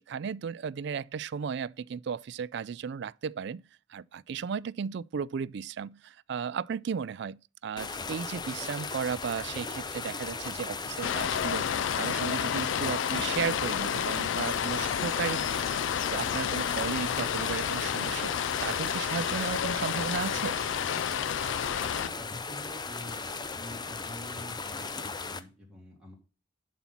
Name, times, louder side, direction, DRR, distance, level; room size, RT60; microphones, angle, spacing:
voice 1, 0.0-3.6 3.9-15.7 16.1-18.3 18.6-20.6, right 6 dB, 60° right, 0.3 m, -35 dB
sound 1, 7.8-25.4, left 4 dB, 20° left, 0.6 m, -37 dB
sound 2, 11.0-22.1, left 9 dB, 65° left, 0.3 m, -30 dB
voice 2, 21.7-23.3 23.5-26.1, left 1 dB, 5° right, 3.3 m, -47 dB
11.0 x 4.2 x 5.9 m
head